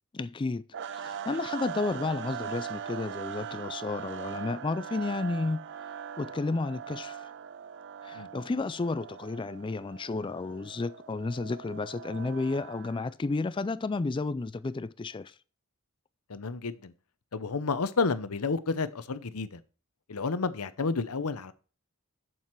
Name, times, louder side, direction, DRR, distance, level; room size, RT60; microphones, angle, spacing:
voice 1, 0.1-0.6 0.9-5.6 6.2-7.3 8.0-15.3, left 3 dB, 20° left, 0.3 m, -32 dB
sound 1, 0.7-13.1, right 8 dB, 55° right, 0.4 m, -41 dB
voice 2, 16.3-16.9 17.3-19.6 20.1-21.5, left 4 dB, 85° left, 0.8 m, -30 dB
8.0 x 7.4 x 4.6 m
head